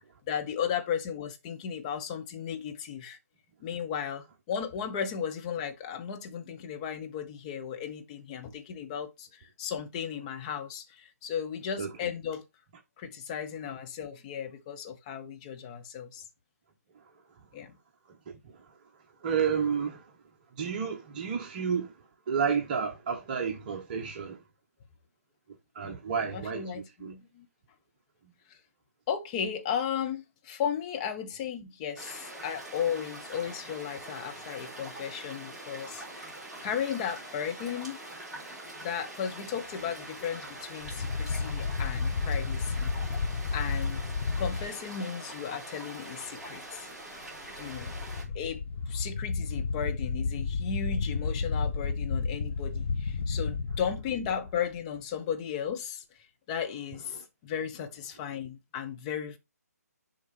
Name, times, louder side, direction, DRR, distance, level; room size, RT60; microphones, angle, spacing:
voice 1, 0.3-3.2 3.6-12.4 13.0-16.2 17.5-17.8 26.3-27.5 28.5-28.6 29.1-36.3 36.6-38.0 38.4-38.5 38.8-42.9 43.5-44.0 44.4-46.9 47.6-47.9 48.3-56.0 56.5-59.4, left 8 dB, 25° left, 1.2 m, -35 dB
voice 2, 18.3-18.6 19.2-20.1 20.6-22.0 22.3-24.4 25.7-27.1 57.1-57.2, right 6 dB, 30° right, 1.3 m, -31 dB
sound 1, 32.0-48.2, right 1 dB, 5° right, 3.6 m, -44 dB
sound 2, 40.8-44.7 47.5-54.8, left 4 dB, 45° left, 1.1 m, -32 dB
7.3 x 4.8 x 4.4 m
figure-of-eight pair, 145°, 9 cm